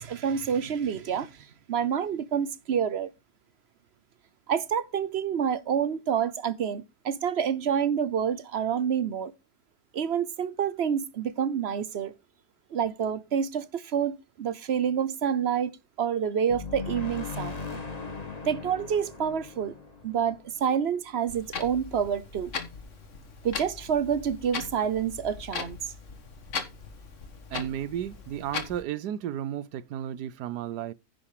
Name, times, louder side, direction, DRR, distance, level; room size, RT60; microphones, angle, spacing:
voice 1, 0.0-3.1 4.5-9.3 9.9-12.1 12.7-15.7 16.0-17.6 18.5-19.7 20.0-22.5 23.4-25.9, right 8 dB, 50° right, 0.8 m, -28 dB
sound 1, 16.5-21.1, left 4 dB, 25° left, 1.8 m, -38 dB
Clock, 21.3-28.8, left 5 dB, 50° left, 1.7 m, -39 dB
voice 2, 27.5-30.9, right 10 dB, 85° right, 1.3 m, -33 dB
10.0 x 6.1 x 4.8 m
omnidirectional pair, 1.7 m